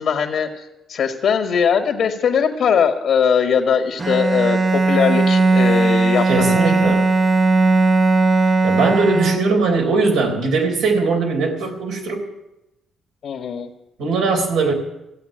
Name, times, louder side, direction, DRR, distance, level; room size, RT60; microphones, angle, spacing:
voice 1, 0.0-7.0 13.2-13.7, left 7 dB, 70° left, 5 dB, 1.5 m, -20 dB
Bowed string instrument, 4.0-9.8, right 3 dB, 30° right, 0.8 m, -17 dB
voice 2, 6.3-7.1 8.6-12.3 14.0-14.7, right 4 dB, 85° right, 1 dB, 3.8 m, -20 dB
15.0 x 8.3 x 10.0 m, 0.93 s
cardioid pair, 90°, 0 cm